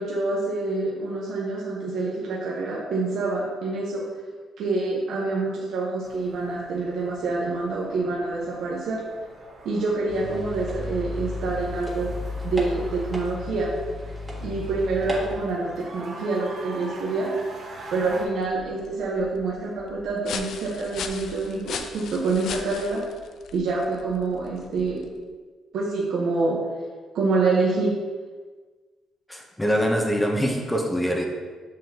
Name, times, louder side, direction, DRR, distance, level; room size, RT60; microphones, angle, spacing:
voice 1, 0.0-4.1 4.6-9.0 9.6-12.1 12.4-13.7 14.4-17.3 17.9-23.0 23.5-25.0 25.7-26.6 27.1-27.9, right 3 dB, 75° right, -5 dB, 1.1 m, -26 dB
sound 1, 6.0-18.2, right 2 dB, 60° right, 2.0 m, -44 dB
sound 2, 10.1-15.4, left 2 dB, 20° right, 1.6 m, -33 dB
sound 3, 17.8-25.3, left 6 dB, 70° left, 0.5 m, -39 dB
voice 2, 29.3-31.2, equal, 10° left, 0 dB, 0.9 m, -24 dB
6.6 x 6.3 x 2.9 m, 1.4 s
cardioid pair, 90°, 0 cm